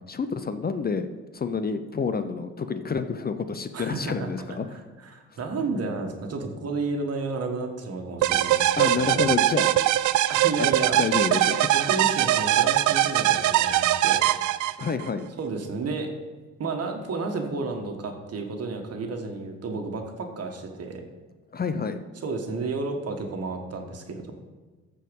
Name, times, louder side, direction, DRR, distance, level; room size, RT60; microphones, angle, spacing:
voice 1, 0.1-1.1 1.3-4.7 8.8-9.7 10.6-10.7 11.0-11.7 14.8-15.3 21.5-22.0, left 5 dB, 30° left, 10 dB, 0.6 m, -28 dB
voice 2, 3.7-4.3 4.6-9.2 10.3-11.0 11.7-14.2 14.6-14.7 15.4-16.1 16.6-21.0 22.2-24.3, right 3 dB, 55° right, 4 dB, 1.6 m, -32 dB
sound 1, 8.2-15.1, right 13 dB, 75° right, 0.5 m, -22 dB
14.0 x 4.7 x 5.3 m, 1.3 s
cardioid pair, 90°, 30 cm